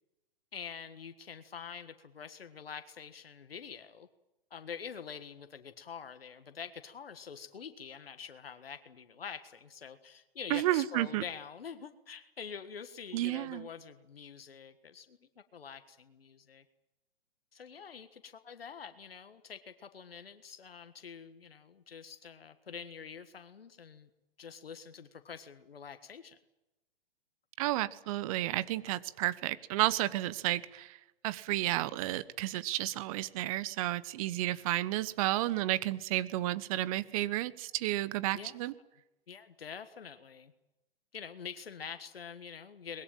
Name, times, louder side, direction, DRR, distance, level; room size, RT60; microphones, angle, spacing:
voice 1, 0.5-4.1 4.5-16.6 17.5-24.1 24.4-26.4 38.3-38.6 39.3-40.5 41.1-43.0, left 6 dB, 75° left, 10 dB, 1.6 m, -46 dB
voice 2, 10.5-11.2 13.1-13.7 27.6-31.0 31.2-38.7, right 16 dB, 35° right, 17 dB, 1.1 m, -32 dB
23.0 x 21.0 x 8.9 m, 0.99 s
figure-of-eight pair, 125°, 30 cm